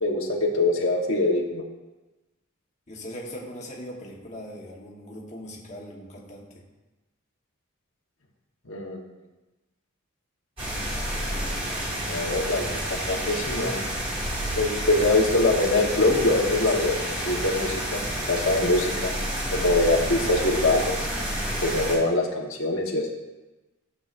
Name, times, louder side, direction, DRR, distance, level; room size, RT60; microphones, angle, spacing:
voice 1, 0.0-1.6 8.7-9.0 12.1-13.9 14.6-17.0 17.2-18.0 18.3-19.1 19.5-21.1 21.6-23.1, left 2 dB, 70° left, -1 dB, 1.3 m, -23 dB
voice 2, 2.9-6.6, equal, 35° left, -3 dB, 1.2 m, -40 dB
sound 1, 10.6-22.0, right 1 dB, 25° right, 2.9 m, -30 dB
14.0 x 7.4 x 2.6 m, 1.1 s
head